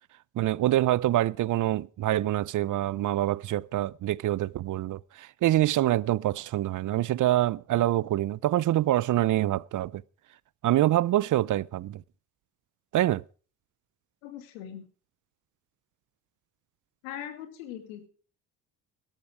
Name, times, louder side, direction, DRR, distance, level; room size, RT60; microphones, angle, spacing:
voice 1, 0.4-10.0 10.6-12.0 12.9-13.2, right 14 dB, 50° right, 0.6 m, -25 dB
voice 2, 14.2-14.9 17.0-18.1, left 10 dB, 90° left, 2.4 m, -40 dB
13.0 x 12.0 x 4.8 m
supercardioid pair, 65°, 40 cm